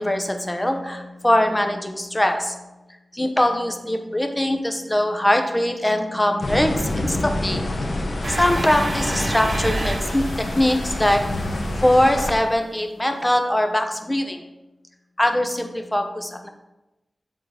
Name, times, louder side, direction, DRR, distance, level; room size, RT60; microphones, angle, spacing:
voice 1, 0.0-2.6 3.1-7.7 8.3-11.2 11.8-14.4 15.2-16.5, left 1 dB, 15° left, 5 dB, 0.9 m, -22 dB
sound 1, 6.4-12.3, left 1 dB, 75° left, 1.1 m, -27 dB
sound 2, 8.2-12.1, right 2 dB, 50° right, 0.8 m, -30 dB
7.3 x 3.9 x 4.9 m, 1.0 s
wide cardioid pair, 60°, 0 cm